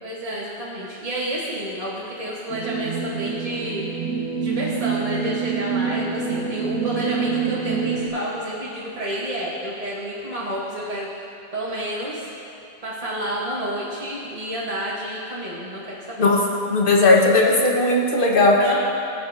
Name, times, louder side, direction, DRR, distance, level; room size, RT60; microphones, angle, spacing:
voice 1, 0.0-3.9 4.4-12.3 12.8-16.3 18.5-18.8, right 1 dB, 30° right, -7 dB, 1.2 m, -30 dB
sound 1, 2.5-8.1, right 5 dB, 90° right, 1.2 m, -26 dB
voice 2, 16.7-18.6, left 2 dB, 45° left, -1 dB, 1.3 m, -17 dB
17.5 x 7.8 x 2.6 m, 2.7 s
omnidirectional pair, 1.3 m